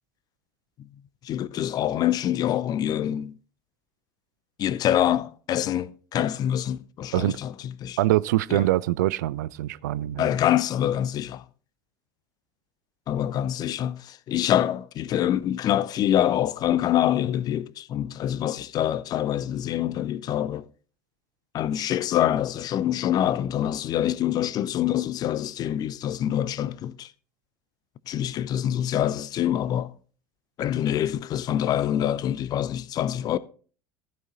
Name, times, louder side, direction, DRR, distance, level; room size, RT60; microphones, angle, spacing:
voice 1, 1.2-3.4 4.6-8.0 8.5-8.6 10.2-11.4 13.1-20.6 21.5-27.1 28.1-29.9 30.6-33.4, left 11 dB, 40° left, 0.7 m, -25 dB
voice 2, 8.0-10.3, right 15 dB, 65° right, 0.4 m, -24 dB
14.5 x 6.3 x 4.0 m
figure-of-eight pair, 70°, 10 cm